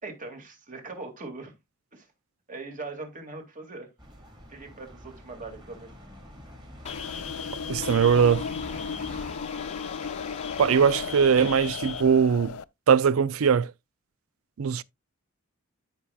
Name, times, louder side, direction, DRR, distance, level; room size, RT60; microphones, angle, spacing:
voice 1, 0.0-1.6 1.9-2.1 2.5-3.9 4.5-5.9, right 3 dB, 40° right, 2.3 m, -40 dB
sound 1, 4.0-9.3, equal, 20° right, 2.5 m, -45 dB
sound 2, 6.8-12.0, left 6 dB, 30° left, 0.8 m, -40 dB
sound 3, 6.9-12.6, left 6 dB, 85° left, 0.4 m, -35 dB
voice 2, 7.7-8.5 10.6-12.5 12.9-13.7 14.6-14.8, right 7 dB, 75° right, 0.4 m, -21 dB
13.0 x 5.6 x 2.3 m
head